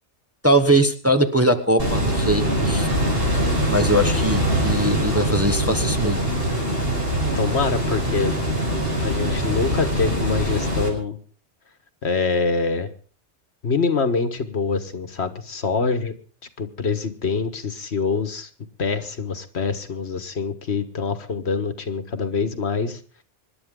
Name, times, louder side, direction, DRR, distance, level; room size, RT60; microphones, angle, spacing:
voice 1, 0.4-2.9 3.7-6.2, right 1 dB, 15° right, 7 dB, 1.2 m, -21 dB
sound 1, 1.8-10.9, equal, 55° right, 5.7 m, -23 dB
voice 2, 7.3-8.4 9.0-11.2 12.0-12.9 13.6-16.1 16.6-18.5 18.8-23.0, left 4 dB, 70° left, 9 dB, 1.7 m, -25 dB
26.0 x 11.0 x 3.7 m, 0.40 s
omnidirectional pair, 1.2 m